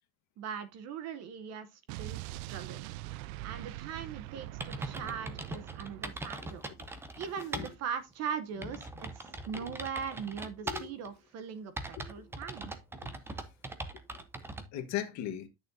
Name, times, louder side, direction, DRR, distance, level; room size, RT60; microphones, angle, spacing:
voice 1, 0.4-2.8 3.4-6.6 7.2-12.7, right 7 dB, 35° right, 0.9 m, -40 dB
Explosion, 1.9-6.7, right 17 dB, 85° right, 0.5 m, -43 dB
sound 1, 4.2-4.3 4.6-7.7 8.1-8.2 8.6-11.1 11.8-14.7, right 2 dB, 5° right, 0.4 m, -41 dB
voice 2, 6.3-7.7 8.6-9.1 9.5-9.7 10.6-10.9 12.0-12.3 12.9-13.2 14.1-14.3 14.7-15.5, left 11 dB, 40° left, 1.5 m, -41 dB
10.5 x 6.6 x 2.7 m
cardioid pair, 170°, 42 cm